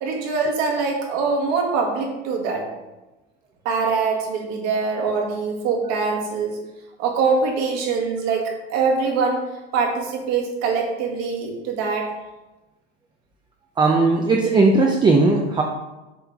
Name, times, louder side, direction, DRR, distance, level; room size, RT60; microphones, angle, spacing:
voice 1, 0.0-2.6 3.7-6.6 7.0-9.4 9.7-12.1, right 4 dB, 55° right, 0 dB, 1.8 m, -23 dB
voice 2, 13.8-15.6, right 3 dB, 15° right, 1 dB, 0.6 m, -17 dB
7.2 x 4.4 x 3.6 m, 1.1 s
supercardioid pair, 110°, 32 cm